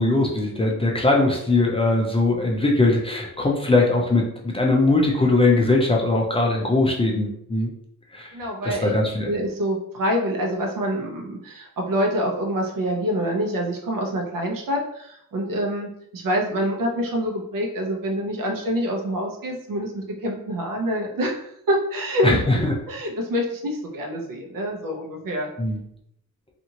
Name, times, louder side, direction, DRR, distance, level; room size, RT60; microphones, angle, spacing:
voice 1, 0.0-7.7 8.1-8.3 8.6-9.3 22.2-22.8 25.6-25.8, left 2 dB, 15° left, -2 dB, 0.4 m, -20 dB
voice 2, 8.3-8.9 9.2-25.5, equal, 75° right, 1 dB, 0.7 m, -26 dB
2.7 x 2.5 x 2.8 m, 0.75 s
wide cardioid pair, 170°, 33 cm